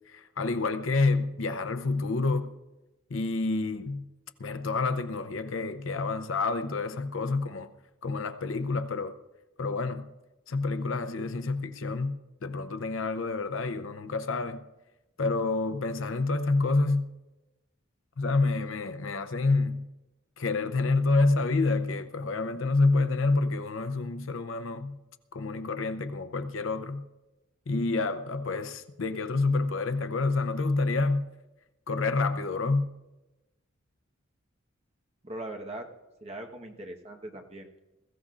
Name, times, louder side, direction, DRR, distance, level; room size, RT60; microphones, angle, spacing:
voice 1, 0.1-2.5 3.1-4.0 4.4-7.7 8.0-9.2 9.6-10.1 10.5-12.2 12.4-14.6 15.2-17.0 18.2-19.8 20.4-25.0 25.3-27.0 27.7-31.2 31.9-32.9, left 3 dB, 70° left, 0.7 m, -28 dB
voice 2, 35.2-35.9 36.2-37.8, right 1 dB, 30° right, 1.1 m, -40 dB
21.0 x 14.5 x 2.5 m
head